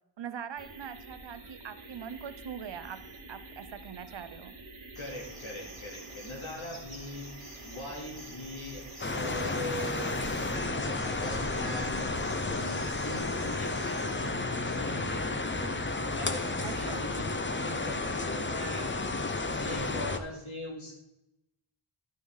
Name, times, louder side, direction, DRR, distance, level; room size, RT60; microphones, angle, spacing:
voice 1, 0.2-3.0 3.3-4.6 16.6-17.1, right 8 dB, 65° right, 12 dB, 0.7 m, -42 dB
sound 1, 0.6-10.6, right 2 dB, 80° right, 1.7 m, -48 dB
voice 2, 4.9-7.3 7.6-15.6 16.1-18.9 19.6-21.0, left 1 dB, 80° left, -2 dB, 3.2 m, -41 dB
Cricket, 4.9-14.3, right 1 dB, ahead, 2.4 m, -50 dB
sound 2, 9.0-20.2, left 2 dB, 25° left, 0.7 m, -32 dB
12.0 x 6.2 x 3.9 m, 0.90 s
wide cardioid pair, 90°, 48 cm